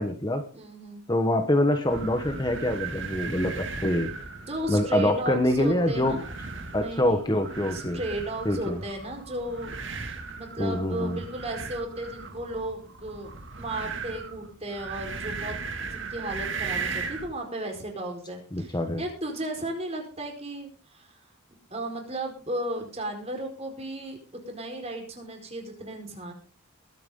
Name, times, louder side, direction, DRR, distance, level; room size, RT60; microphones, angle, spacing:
voice 1, 0.0-0.4 1.1-4.1 4.7-6.2 6.7-8.0 8.4-8.8 10.6-11.2 18.5-19.0, left 1 dB, 20° left, 6 dB, 1.3 m, -25 dB
voice 2, 0.5-1.0 4.4-6.2 6.7-7.3 7.7-13.3 13.6-15.6 15.8-21.1 21.7-24.2 24.5-26.3, right 1 dB, 30° right, 3 dB, 4.6 m, -35 dB
sound 1, 1.8-17.3, right 4 dB, 55° right, 2.3 m, -37 dB
22.0 x 9.2 x 3.8 m, 0.37 s
head